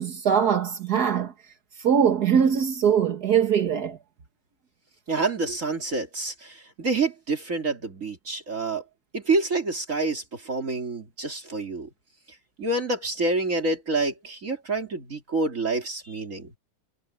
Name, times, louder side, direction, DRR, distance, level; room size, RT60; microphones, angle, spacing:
voice 1, 0.0-1.3 1.8-4.0, right 8 dB, 80° right, 2.0 m, -22 dB
voice 2, 5.1-8.8 9.1-11.9 12.6-16.5, right 3 dB, 55° right, 3.0 m, -27 dB
omnidirectional pair, 1.7 m